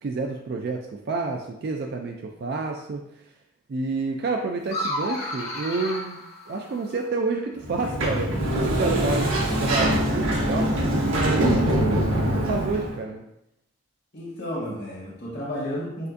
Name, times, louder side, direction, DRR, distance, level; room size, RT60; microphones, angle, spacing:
voice 1, 0.0-3.0 3.7-13.3, right 3 dB, 50° right, 2 dB, 0.3 m, -29 dB
sound 1, 4.6-7.1, left 1 dB, 30° left, 1.0 m, -32 dB
Sliding door, 7.6-12.9, equal, 90° right, 1.0 m, -23 dB
voice 2, 14.1-16.1, equal, 55° left, -5 dB, 1.6 m, -32 dB
6.6 x 2.6 x 2.5 m, 0.80 s
head